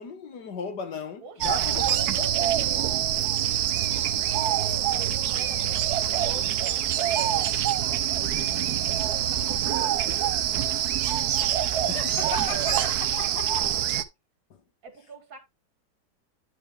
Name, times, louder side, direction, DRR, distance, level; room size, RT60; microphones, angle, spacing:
voice 1, 0.0-2.6 11.9-13.7, left 6 dB, 65° left, 1.9 m, -36 dB
voice 2, 1.2-3.3 4.0-8.0 8.3-8.8 9.2-10.9 14.8-15.4, right 3 dB, 50° right, 2.4 m, -45 dB
sound 1, 1.4-14.0, right 11 dB, 65° right, 1.1 m, -25 dB
11.0 x 4.8 x 3.2 m
omnidirectional pair, 1.9 m